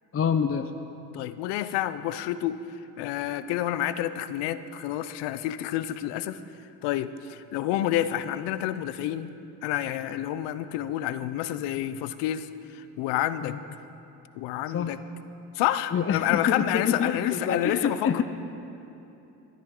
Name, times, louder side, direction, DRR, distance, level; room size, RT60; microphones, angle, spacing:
voice 1, 0.1-0.7 13.4-13.6 14.7-15.0 15.9-18.2, left 7 dB, 35° left, 7 dB, 0.6 m, -26 dB
voice 2, 1.1-2.6 3.0-6.4 6.8-9.3 9.6-12.5 12.7-13.6 14.4-15.0 15.5-18.2, left 12 dB, 80° left, 13 dB, 0.6 m, -29 dB
17.5 x 11.5 x 3.8 m, 2.9 s
supercardioid pair, 65°, 41 cm